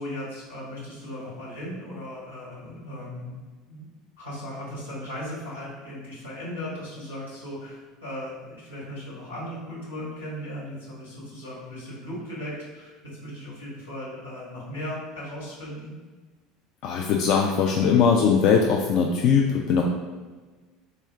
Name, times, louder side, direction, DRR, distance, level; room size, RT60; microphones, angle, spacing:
voice 1, 0.0-3.3 3.7-3.9 4.2-15.9, left 1 dB, 80° left, -7 dB, 1.3 m, -37 dB
voice 2, 16.8-19.8, left 6 dB, 50° left, 1 dB, 0.3 m, -20 dB
3.7 x 3.1 x 3.4 m, 1.3 s
figure-of-eight pair, 70°, 0 cm